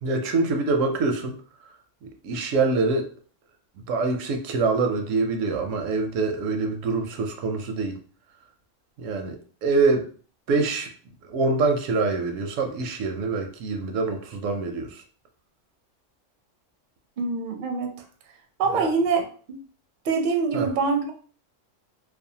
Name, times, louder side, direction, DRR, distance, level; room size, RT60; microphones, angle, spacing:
voice 1, 0.0-1.3 2.0-3.1 3.9-8.0 9.0-9.4 9.6-10.1 10.5-10.9 11.2-15.0 18.7-18.9 20.5-20.7, right 3 dB, 85° right, 4 dB, 0.9 m, -25 dB
voice 2, 17.2-17.9 18.6-19.6 20.0-21.1, right 4 dB, 60° right, 3 dB, 0.5 m, -24 dB
2.6 x 2.1 x 2.7 m, 0.43 s
omnidirectional pair, 1.3 m